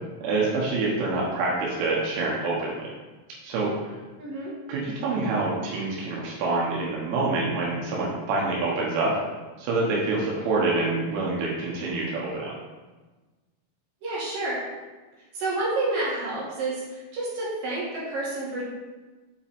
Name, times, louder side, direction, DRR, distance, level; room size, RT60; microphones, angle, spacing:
voice 1, 0.2-2.9 3.4-3.9 4.7-9.2 9.6-12.5, right 3 dB, 85° right, -4 dB, 3.6 m, -26 dB
voice 2, 4.2-4.5 14.0-14.7 15.3-18.6, right 2 dB, 55° right, -8 dB, 3.4 m, -29 dB
7.8 x 5.0 x 3.5 m, 1.2 s
omnidirectional pair, 5.4 m